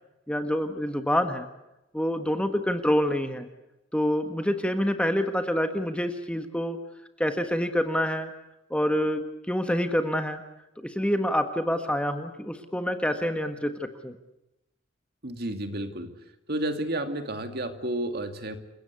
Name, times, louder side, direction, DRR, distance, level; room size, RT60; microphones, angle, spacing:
voice 1, 0.3-1.5 1.9-3.5 3.9-6.8 7.2-8.3 8.7-10.4 10.8-14.1, equal, 5° left, 7 dB, 1.4 m, -27 dB
voice 2, 15.2-16.1 16.5-18.6, right 1 dB, 50° right, 7 dB, 2.4 m, -31 dB
29.0 x 16.5 x 8.3 m, 0.93 s
head